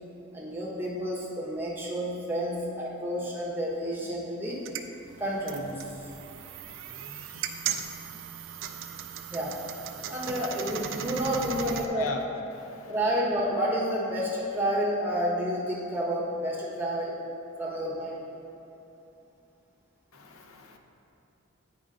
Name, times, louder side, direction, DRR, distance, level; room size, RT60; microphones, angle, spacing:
voice 1, 0.3-4.6 5.2-5.8 9.3-9.6 10.1-12.2 12.9-17.2 17.6-18.2, equal, 10° right, -5 dB, 1.1 m, -30 dB
sound 1, 4.5-11.9, right 8 dB, 65° right, 0.4 m, -37 dB
voice 2, 11.3-12.3 12.5-12.9 20.1-20.8, left 3 dB, 80° left, 3 dB, 0.7 m, -37 dB
8.8 x 5.0 x 3.7 m, 2.8 s
head